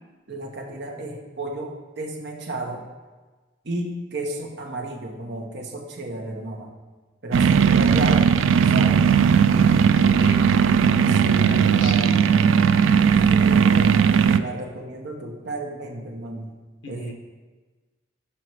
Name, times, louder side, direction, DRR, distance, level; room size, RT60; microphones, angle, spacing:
voice 1, 0.3-2.9 3.6-6.7 7.2-8.3 8.6-9.0 11.1-12.1 13.1-16.5 16.9-17.1, right 2 dB, 60° right, 1 dB, 1.0 m, -32 dB
sound 1, 7.3-14.4, right 7 dB, 90° right, 0.3 m, -17 dB
voice 2, 9.5-12.2 16.8-17.1, left 1 dB, 80° left, 3 dB, 1.1 m, -37 dB
5.8 x 5.4 x 4.7 m, 1.3 s
head